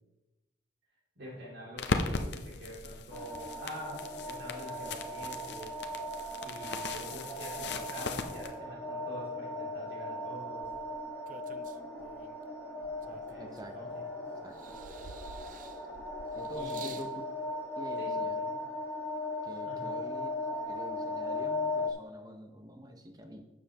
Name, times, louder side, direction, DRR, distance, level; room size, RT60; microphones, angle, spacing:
voice 1, 1.2-5.8 6.4-10.7 13.0-14.0 16.5-17.0 18.0-18.6 19.6-20.1, equal, 65° right, -5 dB, 2.4 m, -46 dB
sound 1, 1.8-8.5, left 3 dB, 60° left, 0.7 m, -38 dB
sound 2, 3.1-21.9, left 2 dB, 10° left, 1.5 m, -38 dB
sound 3, 10.6-12.4 13.0-14.1 14.5-17.1 18.0-18.1, right 6 dB, 40° right, 0.3 m, -50 dB
voice 2, 13.4-14.0 14.4-14.8 16.3-17.2 17.8-18.4 19.4-20.3 20.6-23.4, equal, 20° right, 5 dB, 0.8 m, -46 dB
12.0 x 7.4 x 3.0 m, 1.1 s
head